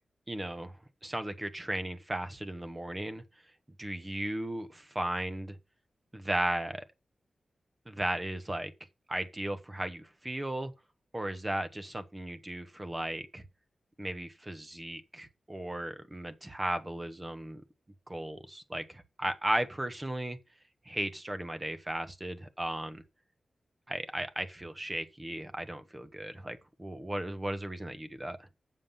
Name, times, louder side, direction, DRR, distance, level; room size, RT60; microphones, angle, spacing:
voice 1, 0.3-0.7 1.0-3.2 3.8-5.6 6.1-6.8 7.9-8.7 9.1-10.7 11.1-13.4 14.0-17.6 18.1-20.4 20.8-23.0 23.9-28.5, right 1 dB, 20° right, 1.2 m, -36 dB
7.4 x 7.4 x 5.5 m
wide cardioid pair, 130°, 0 cm